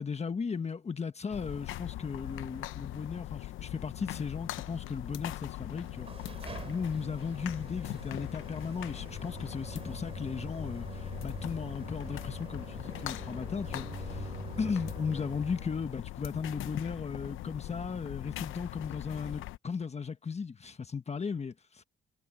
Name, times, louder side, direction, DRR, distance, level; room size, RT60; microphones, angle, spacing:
voice 1, 0.0-6.1 6.6-21.8, left 5 dB, 35° left, 1.4 m, -36 dB
sound 1, 1.3-19.6, left 15 dB, 85° left, 0.8 m, -41 dB
sound 2, 5.7-16.0, right 4 dB, 30° right, 3.5 m, -45 dB
cardioid pair, 90°, 20 cm